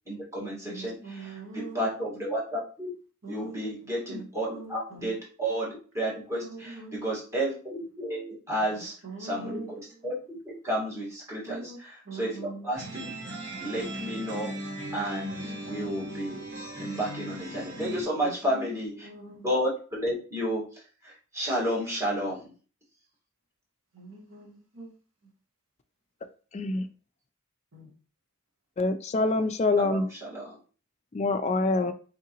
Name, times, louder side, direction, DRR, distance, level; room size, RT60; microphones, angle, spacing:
voice 1, 0.1-2.9 3.3-13.2 13.6-14.5 14.9-16.4 16.8-19.1 19.4-22.5 29.8-30.5, equal, 15° right, -6 dB, 1.7 m, -32 dB
voice 2, 0.7-1.8 3.2-3.7 4.5-4.7 6.8-7.0 9.0-9.7 11.5-11.8 12.1-12.4 19.0-19.4 24.0-24.9, right 3 dB, 75° right, -1 dB, 1.5 m, -41 dB
sound 1, 12.7-18.0, right 1 dB, 55° right, 1.4 m, -37 dB
voice 3, 26.5-26.8 28.8-30.1 31.1-31.9, left 2 dB, 35° left, 8 dB, 0.3 m, -25 dB
3.7 x 3.6 x 2.9 m, 0.38 s
head